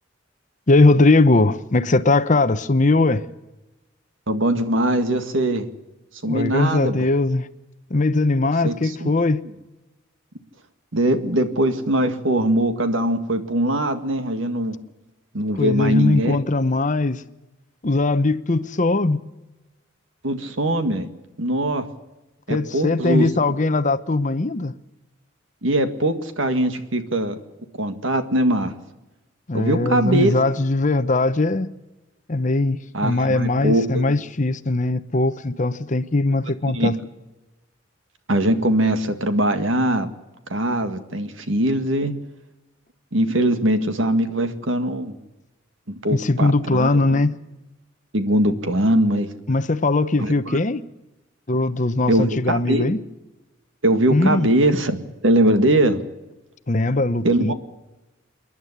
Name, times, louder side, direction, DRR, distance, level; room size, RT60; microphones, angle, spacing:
voice 1, 0.7-3.2 6.3-7.5 7.9-9.4 15.6-17.2 17.8-19.2 22.5-24.7 29.5-31.7 32.3-37.0 46.1-47.4 49.5-50.8 51.5-53.0 54.1-54.5 56.7-57.5, left 2 dB, 40° left, 0.8 m, -20 dB
voice 2, 4.3-5.7 6.2-7.1 8.6-9.1 10.9-14.8 15.3-16.4 20.2-21.1 21.4-21.9 22.5-23.3 25.6-27.3 27.8-28.7 29.5-30.4 32.9-34.2 36.7-36.9 38.3-40.1 40.5-42.1 43.1-45.2 45.9-47.2 48.1-49.3 50.2-50.6 52.1-52.9 53.8-56.0 57.2-57.5, right 1 dB, 70° right, 1.9 m, -21 dB
27.0 x 11.0 x 9.9 m
head